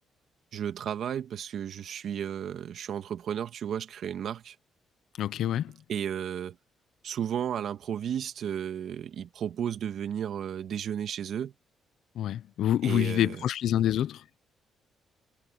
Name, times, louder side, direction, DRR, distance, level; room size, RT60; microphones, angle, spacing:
voice 1, 0.5-4.6 5.9-6.6 7.0-11.5 12.8-13.4, right 9 dB, 65° right, 2.0 m, -33 dB
voice 2, 5.2-5.8 12.1-14.2, left 11 dB, 75° left, 1.0 m, -27 dB
cardioid pair, 90°, 0 cm